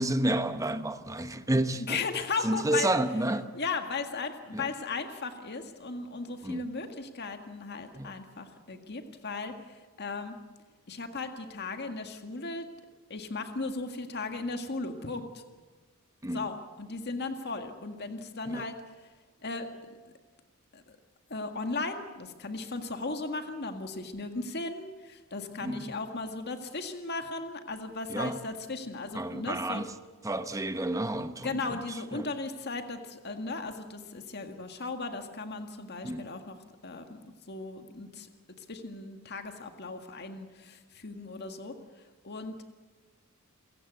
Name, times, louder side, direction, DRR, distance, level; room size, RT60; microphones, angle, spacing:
voice 1, 0.0-2.0 2.4-3.5 4.5-4.6 6.4-6.7 7.9-8.1 16.2-16.5 18.5-18.7 25.6-25.9 28.1-28.4 29.1-29.9 30.2-31.8 32.1-32.3 36.0-36.3, right 1 dB, 15° right, 1.0 m, -30 dB
voice 2, 1.7-2.9 3.5-10.4 10.9-12.7 13.1-15.4 16.3-19.1 19.4-19.7 20.7-21.0 21.3-29.8 31.4-36.6 36.8-37.2 37.5-38.3 38.6-41.8 42.2-42.6, left 3 dB, 50° left, 1.9 m, -36 dB
28.5 x 16.5 x 8.1 m
head